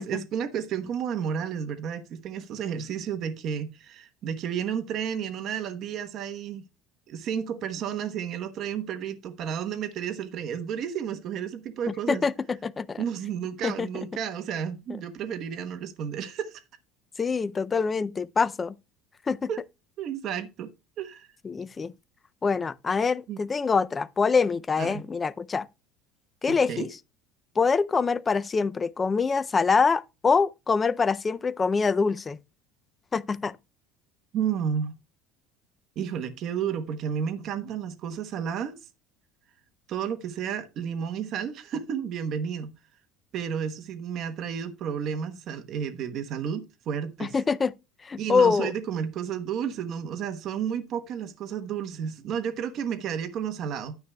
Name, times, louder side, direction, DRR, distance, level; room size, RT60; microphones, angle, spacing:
voice 1, 0.0-6.6 7.1-12.2 13.0-16.6 19.5-19.6 20.0-20.7 21.0-21.3 23.3-23.4 24.8-25.1 26.5-26.9 34.3-35.0 36.0-38.8 39.9-42.7 43.3-47.3 48.2-54.0, right 8 dB, 40° right, 1.1 m, -32 dB
voice 2, 12.1-13.0 13.6-13.9 17.2-18.7 19.3-19.5 21.4-21.9 22.4-25.7 26.4-26.9 27.6-32.4 33.1-33.6 47.3-47.7 48.0-48.7, left 5 dB, 15° left, 0.4 m, -25 dB
11.5 x 9.5 x 2.3 m
cardioid pair, 160°, 0 cm